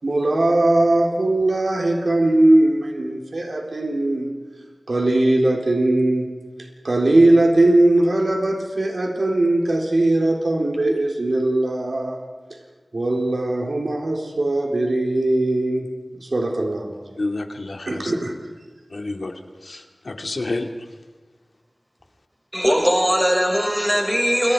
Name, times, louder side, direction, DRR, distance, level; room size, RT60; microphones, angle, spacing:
voice 1, 0.0-4.3 4.9-6.4 6.8-12.2 12.9-17.0 17.9-18.3, right 2 dB, 75° right, 4.0 m, -20 dB
voice 2, 17.2-18.1 18.9-19.3 19.7-19.8 20.1-20.7, left 2 dB, 75° left, 2.6 m, -28 dB
voice 3, 22.5-24.5, equal, 5° right, 6.1 m, -19 dB
29.0 x 25.0 x 5.0 m
wide cardioid pair, 60°, 0 cm